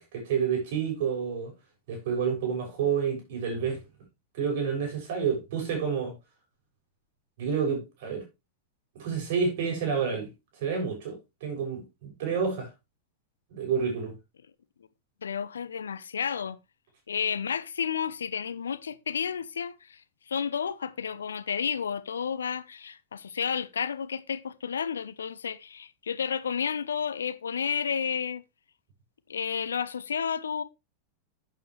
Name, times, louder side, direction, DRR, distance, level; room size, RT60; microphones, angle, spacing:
voice 1, 0.0-1.5 1.9-3.8 4.3-6.1 7.4-8.2 9.0-10.3 10.6-12.7 13.5-14.1, right 6 dB, 55° right, 7.1 m, -29 dB
voice 2, 15.2-16.6 17.1-20.0 20.3-28.4 29.3-30.6, left 7 dB, 70° left, 0.8 m, -31 dB
11.5 x 8.8 x 3.3 m
figure-of-eight pair, 90°, 0 cm